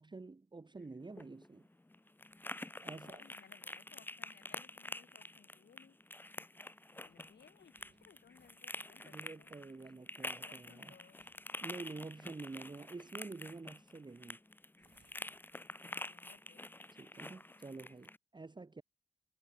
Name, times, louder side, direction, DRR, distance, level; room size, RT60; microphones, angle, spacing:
voice 1, 0.0-1.7 2.8-3.2 9.0-10.9 11.6-14.4 16.9-18.8, right 3 dB, 25° right, 1.0 m, -48 dB
sound 1, 1.0-18.2, left 2 dB, 10° left, 0.6 m, -48 dB
voice 2, 2.6-6.0 6.9-9.5 10.2-11.3 15.8-16.7, left 8 dB, 85° left, 1.1 m, -64 dB
sound 2, 7.0-16.4 16.7-17.0, right 6 dB, 75° right, 7.8 m, -79 dB
wide cardioid pair, 120°, 18 cm